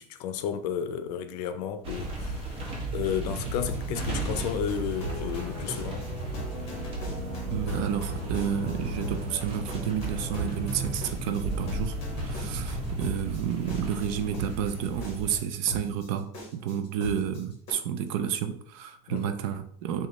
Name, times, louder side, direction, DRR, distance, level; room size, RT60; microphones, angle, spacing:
voice 1, 0.0-6.1 19.1-19.3, left 8 dB, 75° left, 0.5 m, -33 dB
sound 1, 1.8-15.4, right 2 dB, 25° right, 1.0 m, -35 dB
sound 2, 3.7-17.7, equal, 30° left, 1.4 m, -39 dB
sound 3, 4.9-12.3, left 1 dB, 5° left, 0.8 m, -43 dB
voice 2, 7.5-11.9 12.2-20.1, right 9 dB, 55° right, 0.5 m, -30 dB
5.1 x 2.3 x 3.0 m
supercardioid pair, 165°, 21 cm